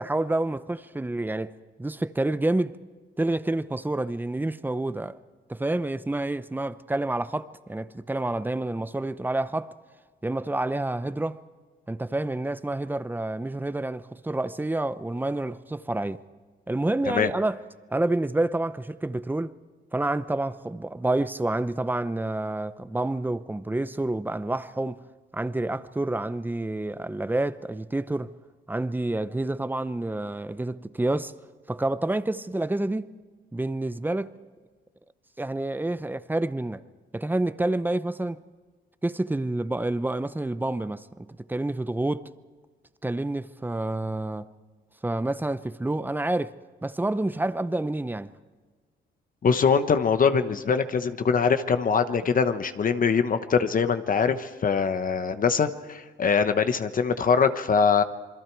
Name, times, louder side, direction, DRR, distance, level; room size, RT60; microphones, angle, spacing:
voice 1, 0.0-1.5 1.8-2.8 3.2-5.2 5.5-9.7 10.2-11.4 11.9-16.2 16.7-17.6 17.9-19.5 19.9-25.0 25.3-28.3 28.7-31.3 31.7-33.1 33.5-34.4 35.4-36.8 37.1-38.4 39.0-42.2 43.0-44.5 45.0-46.5 46.8-48.3, right 2 dB, 10° right, 0.8 m, -28 dB
voice 2, 49.4-58.0, left 6 dB, 45° left, 1.1 m, -23 dB
27.5 x 21.5 x 4.7 m
cardioid pair, 90°, 20 cm